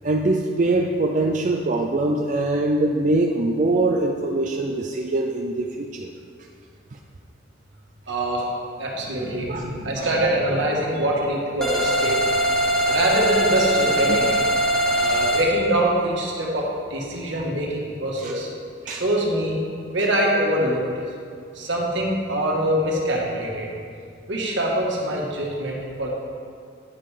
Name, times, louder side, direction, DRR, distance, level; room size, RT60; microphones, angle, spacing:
voice 1, 0.0-6.1 9.5-9.6 10.0-10.1 14.1-14.2 18.2-18.3 18.9-19.0, right 2 dB, 40° right, 1 dB, 0.4 m, -23 dB
voice 2, 8.1-8.5 8.8-9.5 9.8-12.2 12.9-14.4 14.9-18.5 18.8-19.6 19.9-20.8 21.5-23.7 24.3-26.1, right 1 dB, 70° right, -2 dB, 1.5 m, -24 dB
sound 1, 8.9-12.2, equal, 65° left, 2.3 m, -38 dB
sound 2, 11.6-15.4, equal, 5° left, 1.1 m, -21 dB
9.5 x 5.4 x 4.9 m, 2.4 s
head